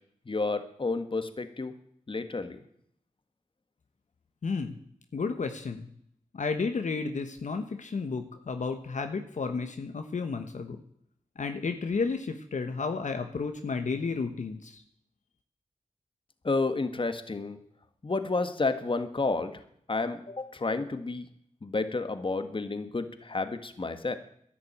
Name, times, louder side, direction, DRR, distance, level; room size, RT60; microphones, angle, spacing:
voice 1, 0.2-1.7 2.1-2.6 16.4-17.6 18.0-19.6 19.9-21.3 21.6-24.2, left 3 dB, 40° left, 9 dB, 1.6 m, -30 dB
voice 2, 4.4-4.7 5.1-5.9 6.3-10.8 11.4-14.8, left 4 dB, 65° left, 6 dB, 1.2 m, -32 dB
11.0 x 10.5 x 8.8 m, 0.68 s
cardioid pair, 50°, 14 cm